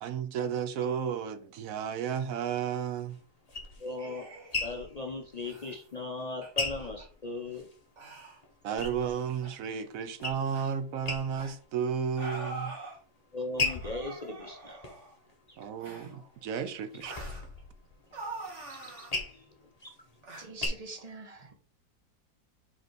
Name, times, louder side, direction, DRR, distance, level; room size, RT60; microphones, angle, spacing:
voice 1, 0.0-3.2 8.6-12.8 15.6-17.1, right 7 dB, 65° right, 0.9 m, -33 dB
sound 1, 3.1-7.8 8.2-9.5 9.8-10.7 11.0-11.7 12.1-12.6 13.2-15.9 16.3-20.7, left 3 dB, 25° left, 1.0 m, -38 dB
voice 2, 3.8-4.3 4.6-7.7 13.3-14.8 15.5-15.6 16.1-16.3 18.7-19.1 19.8-19.9, left 2 dB, 60° left, 0.4 m, -38 dB
sound 2, 4.0-4.6 5.4-5.8 6.4-6.5 6.8-7.1 8.0-8.4 9.4-9.5 10.5-10.7 11.3-11.6 12.2-13.0 13.6-15.1 15.8-16.1 17.0-17.5 18.1-19.2 20.2-20.5, right 2 dB, 45° right, 1.7 m, -43 dB
voice 3, 20.4-21.5, right 3 dB, 25° right, 1.0 m, -44 dB
5.1 x 4.1 x 4.6 m
omnidirectional pair, 1.8 m